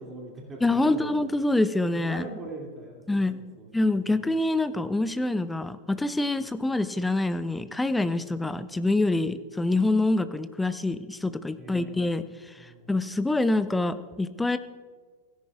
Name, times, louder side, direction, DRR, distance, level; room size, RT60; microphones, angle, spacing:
voice 1, 0.0-1.2 1.9-4.3 8.2-8.4 9.2-9.3 11.6-12.0 12.6-12.9, right 2 dB, 20° right, -1 dB, 2.5 m, -42 dB
voice 2, 0.6-2.3 3.1-3.4 3.7-14.6, left 2 dB, 5° left, 13 dB, 0.6 m, -26 dB
17.0 x 15.0 x 2.4 m, 1.5 s
figure-of-eight pair, 90°, 0 cm